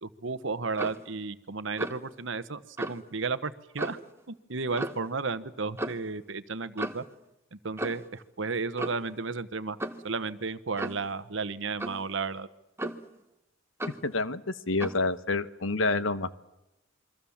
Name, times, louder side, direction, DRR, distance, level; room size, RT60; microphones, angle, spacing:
voice 1, 0.0-4.0 4.3-7.0 7.5-9.8 10.0-12.5, right 4 dB, 65° right, 13 dB, 1.1 m, -33 dB
Clock, 0.7-1.1 1.8-2.1 2.8-3.0 3.8-4.1 4.8-5.1 5.8-6.0 6.8-7.1 7.8-8.1 8.8-9.1 9.8-10.1 10.8-11.1 11.8-12.1 12.8-13.2 13.8-14.1 14.8-15.0, right 1 dB, 10° right, 1.0 m, -35 dB
voice 2, 14.0-16.4, left 3 dB, 70° left, 13 dB, 1.0 m, -28 dB
27.5 x 23.0 x 7.2 m, 0.92 s
head